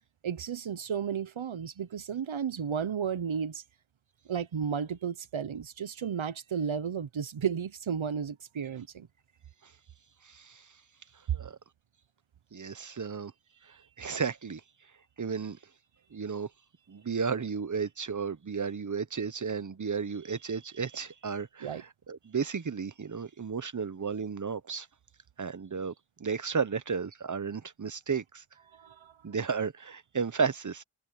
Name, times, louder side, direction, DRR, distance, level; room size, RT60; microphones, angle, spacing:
voice 1, 0.2-3.6 4.3-9.1 21.6-21.8 28.7-29.1, right 7 dB, 70° right, 1.1 m, -33 dB
voice 2, 10.2-10.7 11.3-11.6 12.5-13.3 13.7-14.6 15.2-15.6 16.1-16.5 16.9-24.9 25.4-25.9 26.2-28.4 29.2-30.8, right 5 dB, 35° right, 0.9 m, -33 dB
wide cardioid pair, 80°, 50 cm